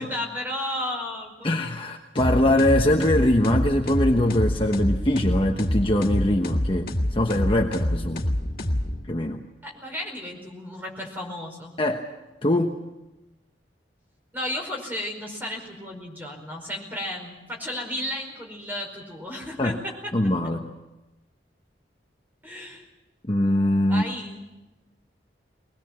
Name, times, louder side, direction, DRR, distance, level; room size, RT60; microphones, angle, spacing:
voice 1, 0.0-1.5 9.6-11.7 14.3-20.1 22.4-22.8 23.9-24.4, left 1 dB, 10° right, 1 dB, 4.9 m, -33 dB
voice 2, 1.4-8.3 9.1-9.4 11.8-12.0 12.4-12.8 19.6-19.8 20.1-20.6 23.3-24.0, left 1 dB, 30° left, 2 dB, 1.1 m, -22 dB
sound 1, 2.2-9.3, left 1 dB, 55° left, 2.1 m, -27 dB
22.0 x 20.5 x 7.5 m, 1.0 s
head